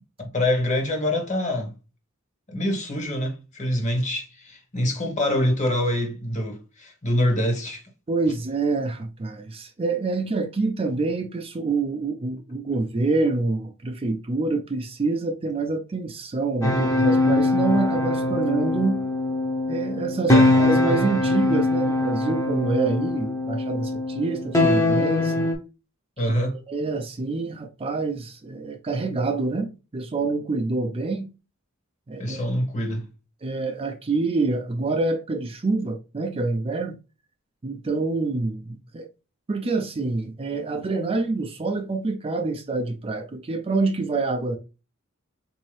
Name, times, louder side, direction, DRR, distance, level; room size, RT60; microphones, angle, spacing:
voice 1, 0.2-1.7 2.5-7.8 20.3-20.5 26.2-26.6 32.2-33.1, left 1 dB, 35° left, 1.0 m, -25 dB
voice 2, 8.1-19.0 19.7-25.5 26.3-26.4 26.7-31.3 32.1-32.6 33.4-37.0 37.6-39.1 39.5-44.6, right 3 dB, 25° right, 0.4 m, -26 dB
sound 1, 16.6-25.5, left 2 dB, 15° left, 0.7 m, -22 dB
3.9 x 2.7 x 3.1 m
head